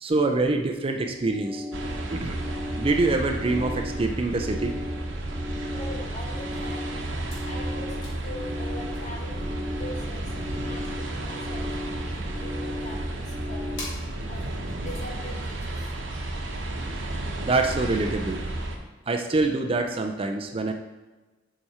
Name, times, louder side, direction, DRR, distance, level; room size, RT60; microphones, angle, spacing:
voice 1, 0.0-1.6 2.1-2.4 2.8-4.7 17.4-18.4 19.1-20.7, right 3 dB, 30° right, 4 dB, 0.4 m, -25 dB
sound 1, 1.0-13.8, left 2 dB, 10° right, 1.0 m, -37 dB
sound 2, 1.7-18.8, right 1 dB, 70° right, 0.9 m, -32 dB
voice 2, 1.8-2.2 4.3-4.4 5.7-9.4 9.7-11.7 12.0-13.9 14.3-15.9, left 1 dB, 40° left, 0 dB, 1.3 m, -42 dB
sound 3, 6.9-18.7, left 2 dB, 75° left, 2.5 m, -50 dB
7.4 x 4.9 x 4.2 m, 1.2 s
head